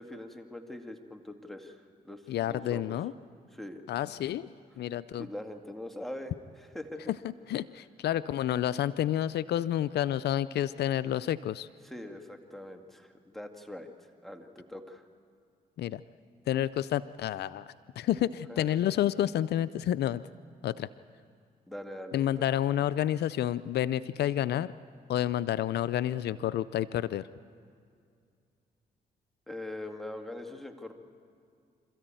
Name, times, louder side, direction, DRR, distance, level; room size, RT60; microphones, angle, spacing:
voice 1, 0.0-3.0 3.5-3.8 5.2-7.0 11.8-15.0 18.5-18.8 21.7-22.5 29.5-30.9, left 1 dB, ahead, 5 dB, 2.1 m, -42 dB
voice 2, 2.3-3.1 3.9-4.5 4.8-5.3 7.1-7.2 7.5-11.7 15.8-16.0 16.5-20.2 20.6-20.9 22.1-24.7 25.1-27.3, left 12 dB, 80° left, 16 dB, 0.4 m, -29 dB
26.5 x 14.0 x 9.1 m, 2.3 s
cardioid pair, 65°, 17 cm